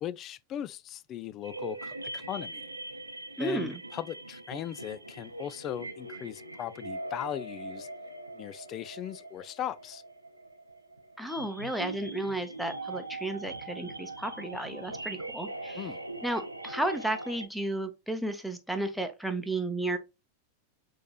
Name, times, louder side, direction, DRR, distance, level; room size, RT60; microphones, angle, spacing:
voice 1, 0.0-2.7 3.4-7.9 8.3-10.0 15.8-16.0, left 11 dB, 30° left, 0.3 m, -38 dB
sound 1, 1.4-17.5, right 2 dB, 85° right, 0.6 m, -42 dB
voice 2, 3.4-3.8 11.2-15.9 16.2-20.0, right 1 dB, ahead, 0.9 m, -33 dB
6.2 x 3.0 x 2.3 m
figure-of-eight pair, 90°, 0 cm